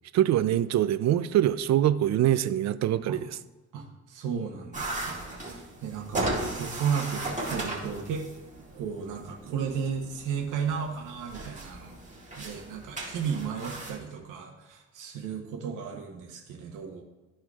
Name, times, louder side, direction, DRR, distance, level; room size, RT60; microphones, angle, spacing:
voice 1, 0.1-3.4, right 12 dB, 65° right, 14 dB, 0.5 m, -24 dB
voice 2, 3.7-8.2 8.7-11.9 12.4-17.0, right 7 dB, 85° right, 1 dB, 0.9 m, -34 dB
sound 1, 4.7-14.0, right 2 dB, 25° right, 1.9 m, -36 dB
12.5 x 4.4 x 2.4 m, 1.2 s
cardioid pair, 90°, 30 cm